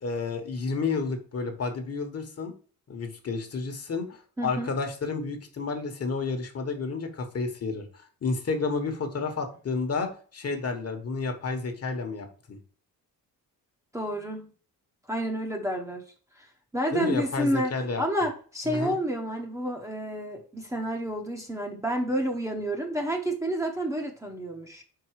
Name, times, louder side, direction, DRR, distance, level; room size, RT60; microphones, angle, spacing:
voice 1, 0.0-2.5 2.9-12.6 16.9-18.0 18.6-18.9, left 4 dB, 45° left, 5 dB, 1.3 m, -31 dB
voice 2, 4.4-4.7 13.9-14.5 15.1-16.0 16.4-16.5 16.7-17.7 18.0-24.8, equal, 10° right, 1 dB, 0.9 m, -29 dB
5.4 x 4.7 x 4.7 m, 0.41 s
wide cardioid pair, 160°, 35 cm